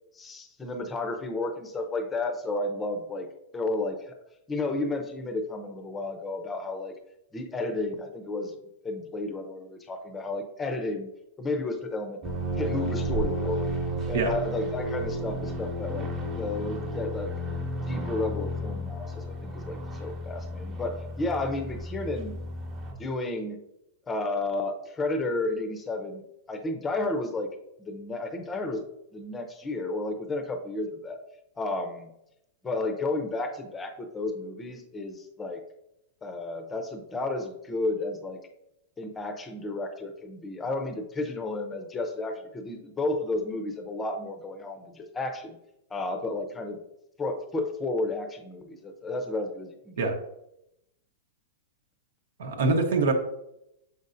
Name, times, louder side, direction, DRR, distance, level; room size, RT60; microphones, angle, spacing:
voice 1, 0.1-3.3 3.5-4.1 4.5-6.9 7.3-8.6 8.8-11.1 11.4-12.2 12.6-13.7 14.1-16.1 16.4-17.3 17.9-22.4 23.0-23.6 24.1-26.2 26.5-27.5 27.8-28.8 29.1-31.2 31.6-32.1 32.6-35.6 36.2-38.4 39.0-45.6 45.9-46.8 47.2-50.1 52.9-53.0, left 2 dB, 10° left, 6 dB, 0.6 m, -32 dB
sound 1, 12.2-22.9, right 1 dB, 25° right, 1.0 m, -33 dB
voice 2, 52.4-53.1, right 3 dB, 80° right, 4 dB, 1.0 m, -24 dB
6.9 x 5.4 x 2.6 m, 0.83 s
supercardioid pair, 165°, 0 cm